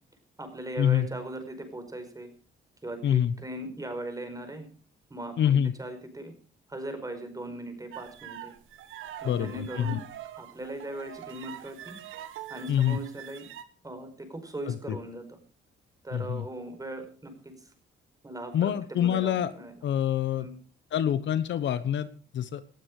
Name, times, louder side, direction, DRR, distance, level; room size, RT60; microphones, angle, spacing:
voice 1, 0.4-2.3 2.8-4.7 5.1-6.3 6.7-8.5 9.2-10.0 10.4-12.0 12.5-13.5 13.8-15.4 16.0-17.5 18.2-19.7 20.3-20.6, right 1 dB, 15° right, 7 dB, 5.1 m, -39 dB
voice 2, 3.0-3.3 5.4-5.7 9.2-10.0 12.7-13.0 14.7-15.0 16.1-16.4 18.5-19.5 19.8-20.5 20.9-22.1 22.3-22.6, left 10 dB, 65° left, 14 dB, 1.1 m, -26 dB
sound 1, 7.9-13.6, right 11 dB, 85° right, 1.4 m, -43 dB
18.5 x 12.5 x 4.9 m, 0.41 s
cardioid pair, 90°, 20 cm